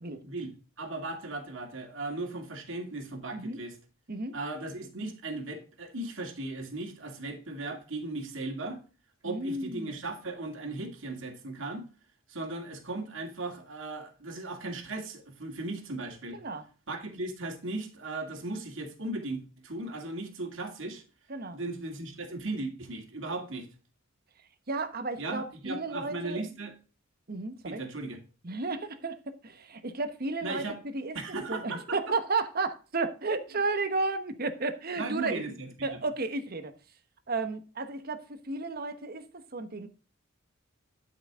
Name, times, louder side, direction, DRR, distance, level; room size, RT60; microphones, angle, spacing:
voice 1, 0.2-3.8 4.3-8.8 9.2-11.8 12.3-16.4 16.9-21.0 21.5-23.7 25.2-26.7 27.6-28.2 30.4-30.8 31.1-32.0 35.0-36.0, right 2 dB, 65° right, 2.4 m, -37 dB
voice 2, 9.2-9.9 16.3-16.6 21.3-21.6 24.7-26.4 27.3-27.8 28.4-29.2 29.4-31.2 31.5-35.4 35.8-36.7 37.3-39.3 39.5-39.9, right 3 dB, 45° right, 1.1 m, -33 dB
12.0 x 5.9 x 3.7 m
head